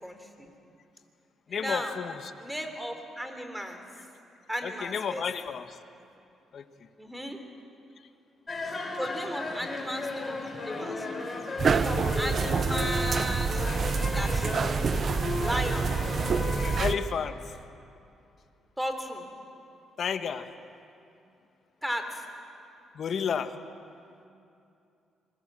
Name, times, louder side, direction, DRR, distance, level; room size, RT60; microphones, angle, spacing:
voice 1, 0.0-0.5 1.5-2.0 2.4-3.8 4.5-5.2 7.0-7.4 9.0-11.1 11.7-13.7 14.1-14.9 15.4-16.0 18.8-19.2 21.8-22.3, equal, 5° right, 6 dB, 3.6 m, -35 dB
voice 2, 1.5-2.2 4.6-5.8 6.5-6.6 16.8-17.4 20.0-20.5 22.9-23.5, left 7 dB, 55° left, 9 dB, 1.4 m, -31 dB
sound 1, 8.5-16.8, left 2 dB, 30° left, 4.7 m, -35 dB
sound 2, 11.6-16.9, right 5 dB, 45° right, 0.9 m, -27 dB
27.5 x 22.5 x 7.6 m, 2.6 s
cardioid pair, 90°, 0 cm